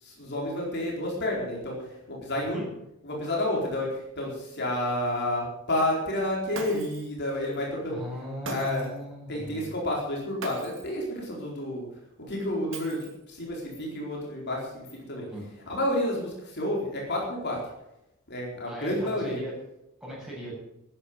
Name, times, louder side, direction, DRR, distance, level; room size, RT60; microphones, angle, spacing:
voice 1, 0.0-2.6 3.0-8.0 8.5-8.9 9.3-11.9 12.3-15.3 15.7-17.6 18.3-19.4, left 1 dB, 55° left, -2 dB, 4.3 m, -30 dB
Shatter, 6.5-7.2 8.4-9.0 10.4-11.0 12.7-13.4, right 3 dB, 65° right, 2.8 m, -39 dB
voice 2, 7.9-9.8 15.3-15.5 18.7-19.5 20.0-20.5, equal, 5° right, -5 dB, 7.9 m, -38 dB
14.5 x 10.5 x 7.7 m, 0.87 s
head